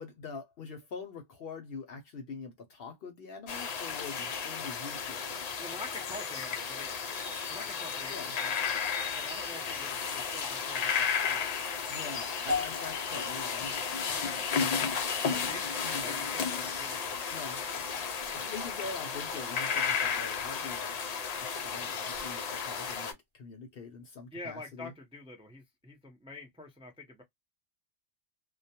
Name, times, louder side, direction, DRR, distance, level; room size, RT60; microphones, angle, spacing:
voice 1, 0.0-5.4 8.1-8.3 11.9-13.7 15.8-16.1 17.3-17.6 18.3-20.9 21.4-24.9, left 4 dB, 60° left, 0.7 m, -44 dB
sound 1, 3.5-23.1, left 6 dB, 80° left, 0.3 m, -33 dB
voice 2, 5.6-6.9 7.5-8.7 9.1-11.5 14.1-14.5 15.3-17.2 24.3-27.2, left 2 dB, 10° right, 0.4 m, -46 dB
sound 2, 12.5-16.9 17.1-17.5 18.2-18.3, left 3 dB, 35° right, 0.9 m, -41 dB
2.2 x 2.2 x 2.7 m
omnidirectional pair, 1.3 m